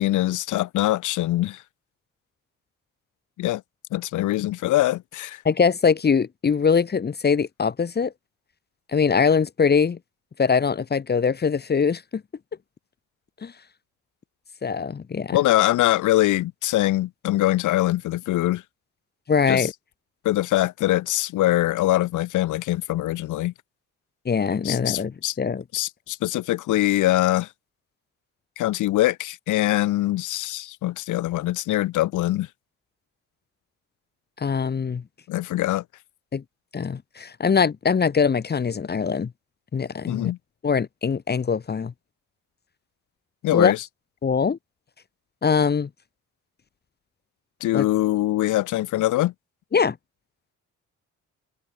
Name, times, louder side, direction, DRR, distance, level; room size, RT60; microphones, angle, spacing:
voice 1, 0.0-1.6 3.4-3.6 3.9-5.4 15.3-18.6 19.5-19.7 20.2-23.5 24.6-25.3 25.7-27.5 28.6-32.5 35.3-35.8 40.1-40.4 43.4-43.8 47.6-49.3, left 16 dB, 80° left, 1.0 m, -23 dB
voice 2, 5.4-8.1 8.9-10.0 10.4-12.2 13.4-13.5 14.6-15.4 19.3-19.7 24.2-25.1 25.4-25.6 34.4-35.0 36.3-36.4 36.7-39.3 39.7-40.3 40.6-41.9 43.5-43.7 44.2-44.6 45.4-45.9 47.7-47.8 49.7-50.0, left 6 dB, 35° left, 1.2 m, -22 dB
open air
cardioid pair, 90°, 30 cm